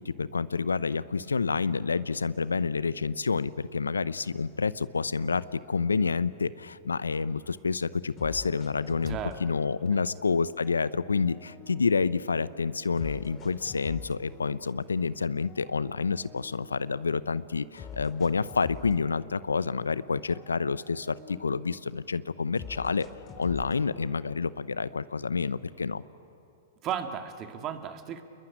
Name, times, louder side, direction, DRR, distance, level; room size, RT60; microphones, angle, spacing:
voice 1, 0.0-23.1 23.4-26.0, left 5 dB, 90° left, 17 dB, 0.7 m, -28 dB
sound 1, 8.2-10.2 10.6-12.4 13.0-14.9 15.4-17.2 17.8-19.9 20.2-22.0 22.6-24.6, left 6 dB, 30° left, 2.6 m, -47 dB
voice 2, 9.1-9.4 9.9-10.0 26.8-28.2, right 9 dB, 35° right, 6 dB, 2.1 m, -35 dB
28.5 x 21.0 x 10.0 m, 2.9 s
hypercardioid pair, 110°, 0 cm